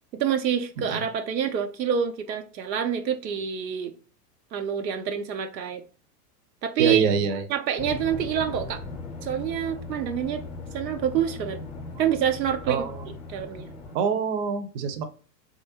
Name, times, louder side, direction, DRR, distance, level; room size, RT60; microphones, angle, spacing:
voice 1, 0.1-3.9 4.5-5.8 6.6-7.0 7.5-8.8 9.2-10.4 10.7-11.6 12.0-12.8 13.3-13.7, right 8 dB, 85° right, 0.6 m, -27 dB
voice 2, 6.8-7.5 12.7-13.1 13.9-15.0, right 6 dB, 45° right, 0.6 m, -25 dB
sound 1, 7.8-14.0, left 3 dB, 10° left, 0.6 m, -38 dB
3.2 x 2.5 x 2.7 m
hypercardioid pair, 95°, 49 cm